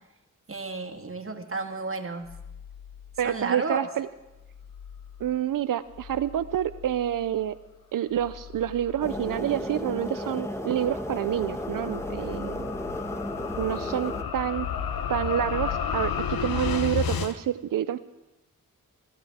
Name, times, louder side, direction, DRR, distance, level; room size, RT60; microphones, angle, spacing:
voice 1, 0.5-2.3 3.2-3.8, right 3 dB, 40° right, 4 dB, 1.7 m, -32 dB
sound 1, 2.2-3.7 4.1-10.6 10.9-13.2, left 8 dB, 50° left, 1.6 m, -47 dB
voice 2, 3.2-4.1 5.2-7.6 7.9-12.7 13.6-14.7 15.1-18.0, right 11 dB, 70° right, 13 dB, 0.5 m, -28 dB
sound 2, 9.0-14.2, left 1 dB, 10° left, 1.1 m, -34 dB
sound 3, 9.5-17.3, left 7 dB, 85° left, 0.9 m, -32 dB
21.5 x 13.0 x 3.6 m, 1.0 s
cardioid pair, 50°, 34 cm